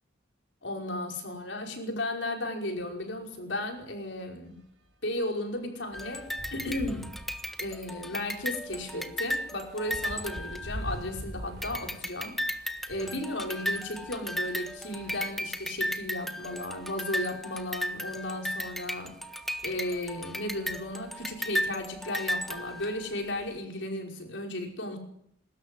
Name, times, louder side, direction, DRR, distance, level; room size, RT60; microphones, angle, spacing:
voice 1, 0.6-4.6 5.0-7.1 7.6-12.4 12.9-19.1 19.6-25.0, left 1 dB, 70° left, 2 dB, 5.3 m, -35 dB
sound 1, 2.8-3.0 3.3-3.4 3.8-13.3 14.0-15.3 16.0-16.1 16.3-16.4 18.1-18.3 18.9-19.1 19.5-20.8, equal, 65° right, 5.0 m, -45 dB
sound 2, 5.9-11.2 11.6-23.2, equal, ahead, 1.2 m, -35 dB
23.0 x 13.5 x 10.0 m, 0.71 s
head